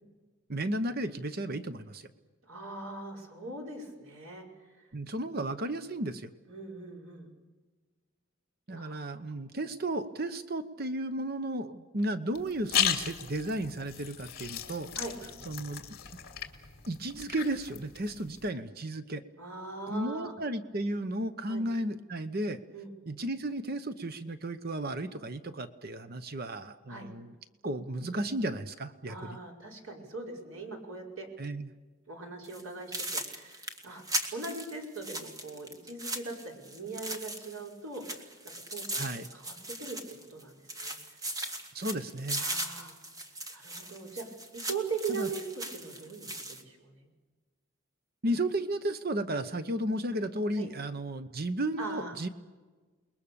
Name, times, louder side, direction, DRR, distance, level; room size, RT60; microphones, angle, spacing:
voice 1, 0.5-2.1 4.9-6.3 8.7-14.9 15.5-15.8 16.9-19.2 19.9-22.6 23.1-27.3 27.6-29.4 31.4-31.7 38.9-39.3 41.7-42.4 45.1-45.3 48.2-52.3, right 1 dB, 45° right, 11 dB, 0.9 m, -34 dB
voice 2, 2.4-4.9 6.5-7.3 8.7-9.2 15.0-15.1 19.4-20.3 21.5-21.7 22.7-22.9 26.9-27.1 29.1-31.3 32.1-34.0 34.3-38.3 38.7-39.5 39.8-40.0 40.3-41.0 42.4-42.9 43.5-44.3 44.5-45.5 45.7-47.1 50.5-50.7 51.8-52.2, right 4 dB, 80° right, 0 dB, 5.3 m, -40 dB
sound 1, 12.3-18.5, left 9 dB, 50° left, 2.5 m, -35 dB
sound 2, 32.4-32.6 32.9-37.7 37.9-40.4 40.7-46.6, right 1 dB, 15° right, 1.9 m, -38 dB
29.0 x 21.5 x 7.0 m, 1.3 s
head